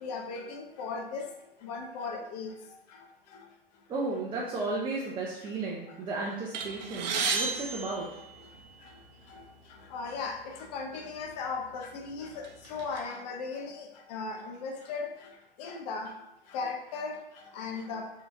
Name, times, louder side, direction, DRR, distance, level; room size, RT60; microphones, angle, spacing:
voice 1, 0.0-1.3 1.6-2.5 9.9-12.4 12.7-15.1 15.6-16.1 16.5-17.2 17.5-18.1, left 4 dB, 45° left, 3 dB, 0.7 m, -36 dB
voice 2, 3.9-8.2, right 3 dB, 15° right, -4 dB, 0.7 m, -34 dB
sound 1, 6.5-8.9 9.7-9.8 10.2-10.3 11.2-11.3 11.8-13.0, right 4 dB, 45° right, 0.8 m, -33 dB
5.2 x 2.9 x 3.4 m, 0.85 s
figure-of-eight pair, 95°, 30 cm